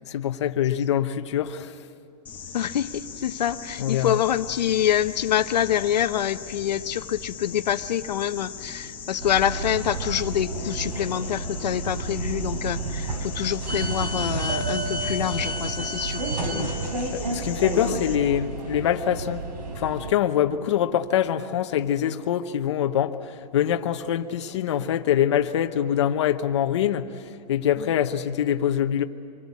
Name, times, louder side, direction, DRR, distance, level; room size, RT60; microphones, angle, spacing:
voice 1, 0.1-1.7 3.8-4.2 17.1-19.4 19.7-29.0, left 10 dB, 45° left, 7 dB, 0.9 m, -24 dB
sound 1, 2.3-18.2, left 6 dB, 10° left, 1.2 m, -40 dB
voice 2, 2.5-16.2 16.5-16.7 17.7-18.0 27.8-27.9, left 10 dB, 85° left, 10 dB, 0.9 m, -26 dB
sound 2, 9.2-20.1, right 2 dB, 85° right, 4.2 m, -30 dB
25.5 x 21.5 x 8.4 m, 2.7 s
hypercardioid pair, 175°, 21 cm